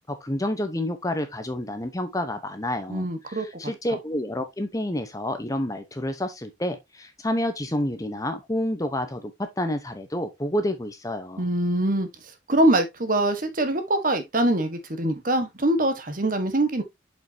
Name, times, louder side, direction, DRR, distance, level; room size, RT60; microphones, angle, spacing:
voice 1, 0.1-9.3 9.6-11.4, left 1 dB, 20° left, 0.8 m, -29 dB
voice 2, 2.9-3.7 11.4-12.1 12.5-16.8, right 1 dB, 45° right, 1.3 m, -23 dB
7.6 x 5.3 x 2.7 m
head